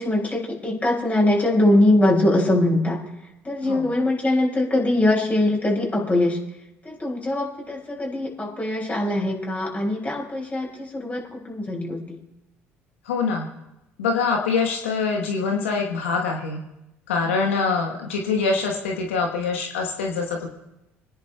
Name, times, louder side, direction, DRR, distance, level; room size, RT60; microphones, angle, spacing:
voice 1, 0.0-3.0 3.4-6.4 6.8-12.2, left 1 dB, 25° left, -2 dB, 4.8 m, -22 dB
voice 2, 3.6-3.9 13.0-13.5 14.0-16.6 17.1-20.5, left 4 dB, 85° left, 1 dB, 1.1 m, -24 dB
27.5 x 10.5 x 2.3 m, 0.93 s
hypercardioid pair, 60°, 7 cm